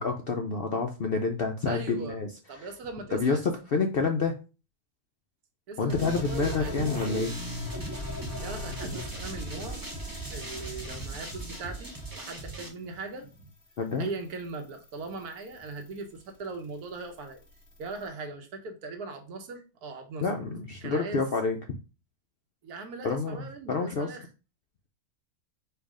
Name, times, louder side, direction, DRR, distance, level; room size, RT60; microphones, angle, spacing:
voice 1, 0.0-2.3 2.6-2.7 3.1-4.4 5.8-7.3 13.8-14.1 20.2-21.6 23.0-24.1, left 4 dB, 75° left, 4 dB, 0.5 m, -28 dB
voice 2, 1.7-2.2 2.5-3.4 5.7-7.3 8.4-9.8 10.3-13.5 14.0-17.4 17.8-20.3 20.8-21.3 22.6-24.3, right 3 dB, 80° right, 5 dB, 1.3 m, -39 dB
sound 1, 5.9-12.7, right 1 dB, 20° right, 0.6 m, -37 dB
sound 2, 6.0-18.1, left 2 dB, 20° left, 1.7 m, -47 dB
4.6 x 2.4 x 4.8 m, 0.31 s
omnidirectional pair, 1.6 m